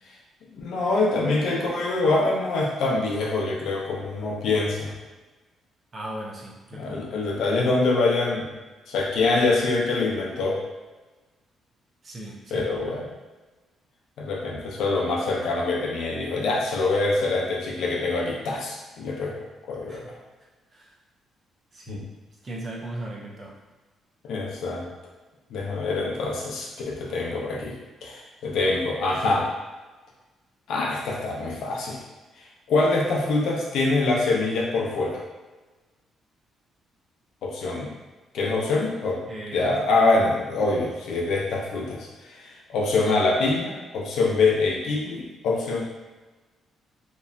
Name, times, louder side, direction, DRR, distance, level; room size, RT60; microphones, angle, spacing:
voice 1, 0.5-4.9 6.7-8.5 8.9-10.6 12.5-13.0 14.2-19.4 19.7-20.0 21.9-22.0 24.3-24.8 25.5-27.7 28.0-29.5 30.7-32.0 32.4-35.2 37.4-37.9 38.3-39.2 39.5-45.8, left 3 dB, 80° left, -2 dB, 0.5 m, -25 dB
voice 2, 5.9-7.0 12.0-12.7 19.9-20.1 20.7-20.9 21.7-22.0 22.4-23.6 39.3-39.7 40.2-40.4, right 1 dB, 40° right, -3 dB, 0.6 m, -37 dB
2.9 x 2.1 x 2.4 m, 1.2 s
cardioid pair, 90°, 0 cm